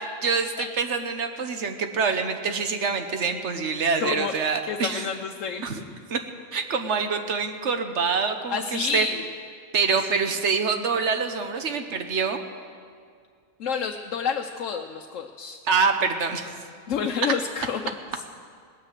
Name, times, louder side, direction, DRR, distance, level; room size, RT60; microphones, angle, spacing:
voice 1, 0.2-5.1 5.6-5.8 6.1-6.2 6.5-9.1 9.7-12.4 15.6-16.5, right 5 dB, 65° right, 7 dB, 1.3 m, -25 dB
voice 2, 4.0-4.3 4.6-5.6 8.5-9.3 10.1-10.2 13.6-15.6 16.9-17.9, left 6 dB, 85° left, 4 dB, 1.1 m, -29 dB
18.5 x 9.4 x 7.5 m, 2.1 s
omnidirectional pair, 1.3 m